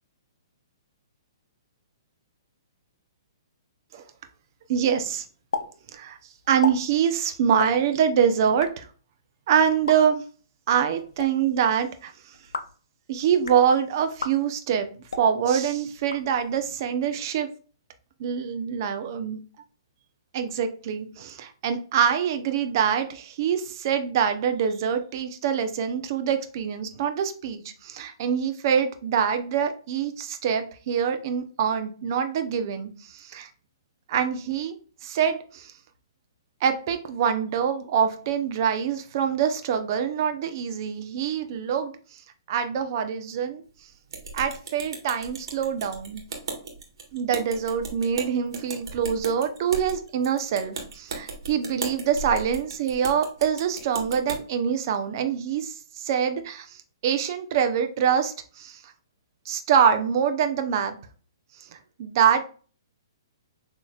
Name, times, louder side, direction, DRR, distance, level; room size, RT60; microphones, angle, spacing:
voice 1, 4.7-5.2 5.6-6.2 6.5-8.9 9.5-10.2 10.7-12.3 13.1-14.9 15.2-17.5 18.2-19.4 20.3-33.5 34.1-34.7 35.0-35.7 36.6-41.9 42.5-43.6 44.3-46.2 47.1-58.8 59.5-60.9 61.7-62.4, right 8 dB, 50° right, 8 dB, 0.7 m, -25 dB
sound 1, 5.5-5.7 5.9-6.0 6.4-6.7 7.5-7.7 8.4-8.7 9.7-10.0 11.0-11.3 12.3-12.8 13.3-13.6 14.1-14.3 15.0-15.3 16.0-16.7, left 4 dB, 90° left, 0.6 m, -33 dB
sound 2, 44.1-54.4, right 3 dB, 75° right, 1.5 m, -37 dB
6.4 x 3.1 x 2.4 m, 0.39 s
hypercardioid pair, 140°, 2 cm